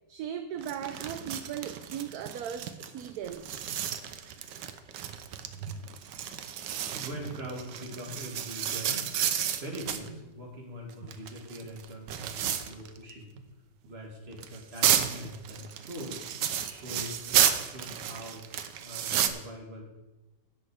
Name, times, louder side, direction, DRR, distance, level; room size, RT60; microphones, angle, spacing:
voice 1, 0.1-3.4, right 9 dB, 70° right, 9 dB, 1.0 m, -37 dB
sound 1, 0.6-10.1 10.9-13.1 13.4-13.5 14.3-19.3, right 9 dB, 85° right, 1.4 m, -32 dB
voice 2, 6.8-9.2 9.6-13.3 13.8-16.2 16.6-18.5 18.8-19.8, equal, 35° right, -1 dB, 2.5 m, -42 dB
16.5 x 6.4 x 4.9 m, 1.1 s
omnidirectional pair, 1.8 m